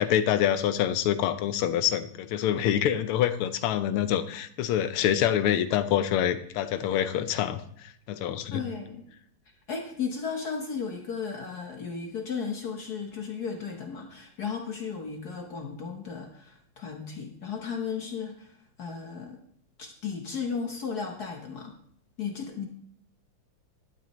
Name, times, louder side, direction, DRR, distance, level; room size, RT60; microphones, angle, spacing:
voice 1, 0.0-8.6, left 10 dB, 80° left, 11 dB, 1.6 m, -26 dB
voice 2, 8.5-9.1 9.7-18.5 18.8-19.4 19.8-21.8 22.2-22.7, left 6 dB, 55° left, 3 dB, 1.3 m, -35 dB
12.0 x 11.5 x 3.0 m, 0.65 s
omnidirectional pair, 2.4 m